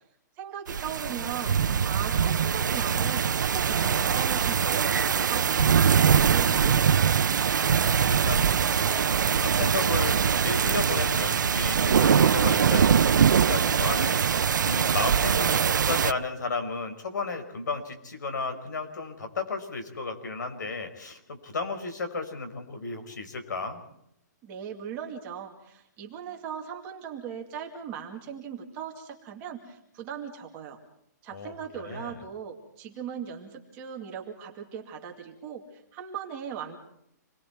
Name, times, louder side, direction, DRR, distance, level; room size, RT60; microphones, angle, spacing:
voice 1, 0.4-1.6 1.8-7.2 24.4-30.8 31.2-35.6 35.9-36.8, right 8 dB, 20° right, 1 dB, 2.2 m, -38 dB
sound 1, 0.7-16.1, right 7 dB, 85° right, 0.8 m, -23 dB
voice 2, 7.7-23.8 31.3-32.2, left 4 dB, 75° left, 7 dB, 5.1 m, -34 dB
27.5 x 21.0 x 4.6 m, 0.76 s
hypercardioid pair, 175°, 10 cm